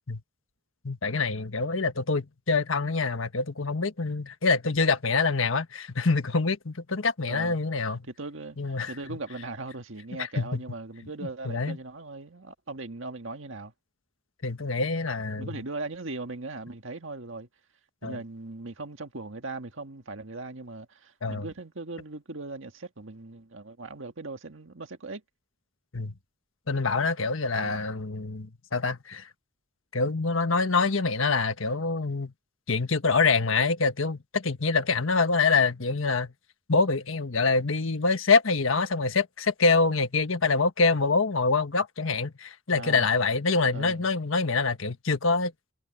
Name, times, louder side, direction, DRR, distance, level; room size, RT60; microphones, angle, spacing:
voice 1, 0.8-8.1 8.6-8.9 10.2-10.6 11.4-11.8 14.4-15.5 18.0-18.2 21.2-21.5 25.9-26.1 26.7-29.3 29.9-32.3 32.7-36.3 36.7-45.5, left 4 dB, 70° left, 1.4 m, -25 dB
voice 2, 7.3-7.6 7.8-13.7 15.4-17.5 18.0-25.2 27.5-27.8 42.7-43.1 43.7-44.1, right 3 dB, 65° right, 1.8 m, -39 dB
head